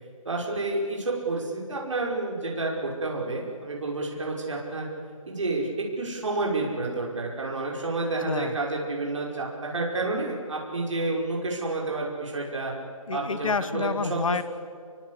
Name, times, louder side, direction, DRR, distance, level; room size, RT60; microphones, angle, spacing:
voice 1, 0.2-4.9 5.3-12.7 13.1-14.2, right 2 dB, 55° right, -2 dB, 5.7 m, -30 dB
voice 2, 8.2-8.6 13.1-14.4, left 5 dB, 65° left, 15 dB, 1.0 m, -28 dB
28.5 x 23.5 x 8.3 m, 2.3 s
hypercardioid pair, 175°, 18 cm